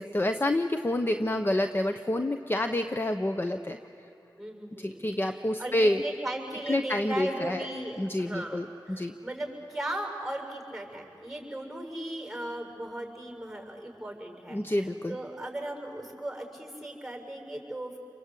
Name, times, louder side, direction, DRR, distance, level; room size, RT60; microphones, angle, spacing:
voice 1, 0.0-3.8 4.8-6.0 6.7-7.7 8.0-9.1 14.5-15.1, left 1 dB, 25° left, 8 dB, 0.9 m, -28 dB
voice 2, 4.4-14.8 15.1-18.0, right 1 dB, ahead, 2 dB, 7.0 m, -37 dB
28.5 x 23.5 x 8.5 m, 2.8 s
cardioid pair, 45°, 8 cm